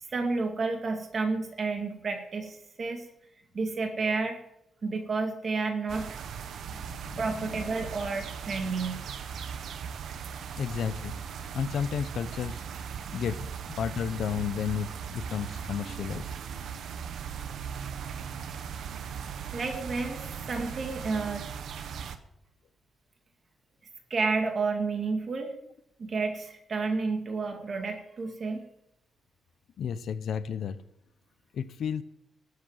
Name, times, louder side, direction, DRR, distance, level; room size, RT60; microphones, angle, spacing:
voice 1, 0.1-3.0 3.5-4.4 4.8-6.1 7.2-9.0 19.5-21.5 24.1-25.5 26.0-28.6, right 4 dB, 50° right, 4 dB, 2.3 m, -30 dB
sound 1, 5.9-22.2, right 7 dB, 80° right, 1.2 m, -38 dB
voice 2, 6.6-7.7 10.6-11.1 11.5-12.6 13.1-16.3 29.8-30.8 31.5-32.0, left 7 dB, 75° left, 12 dB, 0.7 m, -33 dB
13.0 x 8.4 x 9.0 m, 0.80 s
cardioid pair, 90°, 0 cm